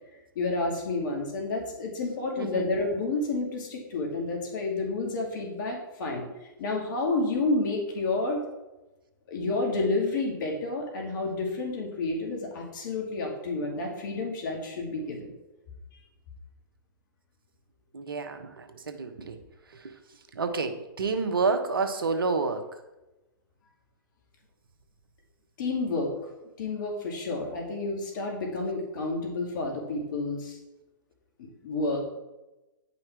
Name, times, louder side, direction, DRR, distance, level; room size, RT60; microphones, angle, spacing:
voice 1, 0.4-6.2 6.6-8.4 9.3-15.3 25.6-26.1 26.6-30.6 31.4-32.0, left 3 dB, 60° left, 0 dB, 2.4 m, -30 dB
voice 2, 2.4-2.7 17.9-19.4 19.7-22.7, right 4 dB, 80° right, 7 dB, 1.2 m, -30 dB
10.0 x 5.7 x 4.6 m, 1.0 s
hypercardioid pair, 115°, 12 cm